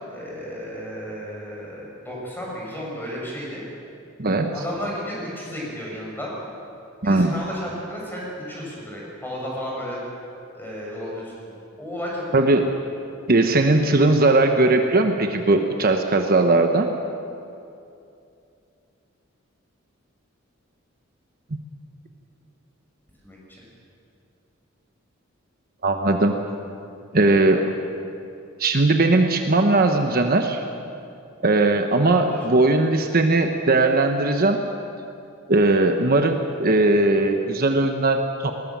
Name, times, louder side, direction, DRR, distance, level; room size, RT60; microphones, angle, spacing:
voice 1, 0.0-3.6 4.5-6.3 7.0-10.0 10.5-11.3 11.8-12.4 23.2-23.6 32.0-32.4, equal, 10° left, -4 dB, 6.7 m, -33 dB
voice 2, 7.0-7.3 12.3-12.7 13.3-16.9 25.8-26.4 27.1-27.6 28.6-30.6 31.4-34.6 35.5-38.5, right 2 dB, 45° right, 5 dB, 1.1 m, -19 dB
20.0 x 20.0 x 7.4 m, 2.7 s
head